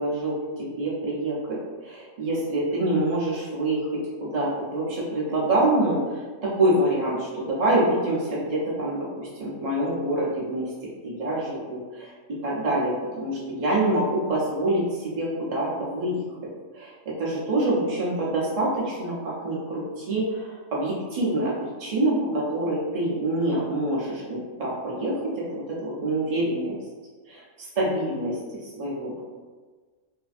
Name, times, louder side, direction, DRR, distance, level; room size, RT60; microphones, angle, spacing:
voice 1, 0.0-1.6 1.8-3.8 4.2-6.0 6.6-10.7 11.0-12.1 12.4-16.2 16.7-16.9 17.2-21.5 21.8-25.1 25.5-26.7 27.3-29.2, right 1 dB, 55° right, -6 dB, 0.4 m, -26 dB
2.6 x 2.4 x 2.4 m, 1.4 s
omnidirectional pair, 1.3 m